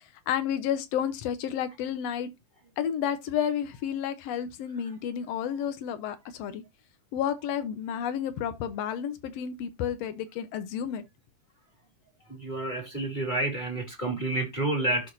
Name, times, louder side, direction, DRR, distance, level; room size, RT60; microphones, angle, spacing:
voice 1, 0.0-2.3 2.8-6.6 7.1-11.0, left 9 dB, 85° left, 1.4 m, -31 dB
voice 2, 12.3-15.1, right 2 dB, 15° left, 2.2 m, -29 dB
12.5 x 4.8 x 2.6 m
omnidirectional pair, 4.1 m